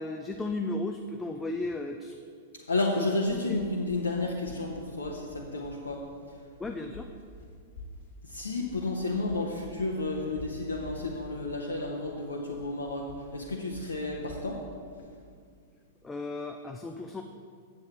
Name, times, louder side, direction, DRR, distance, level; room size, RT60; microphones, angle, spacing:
voice 1, 0.0-2.2 3.0-3.1 3.5-3.6 6.6-7.1 16.0-17.2, left 2 dB, 10° left, 4 dB, 0.4 m, -34 dB
voice 2, 2.7-6.0 8.2-14.6, left 2 dB, 75° left, -1 dB, 0.7 m, -31 dB
sound 1, 3.3-16.2, left 1 dB, 55° left, 1.4 m, -49 dB
7.6 x 7.6 x 4.6 m, 2.2 s
figure-of-eight pair, 100°, 0 cm